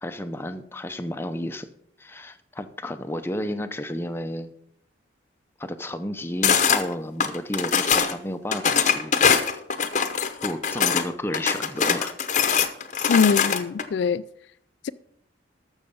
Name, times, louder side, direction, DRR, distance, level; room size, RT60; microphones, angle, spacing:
voice 1, 0.0-1.7 2.0-4.5 5.6-9.6 10.4-12.1, left 1 dB, 10° left, 0.6 m, -32 dB
sound 1, 6.4-6.8 7.2-8.1 8.5-11.0 11.3-13.8, left 6 dB, 40° left, 0.9 m, -22 dB
voice 2, 13.1-14.2 14.8-14.9, left 6 dB, 65° left, 0.3 m, -22 dB
14.0 x 6.4 x 5.5 m
head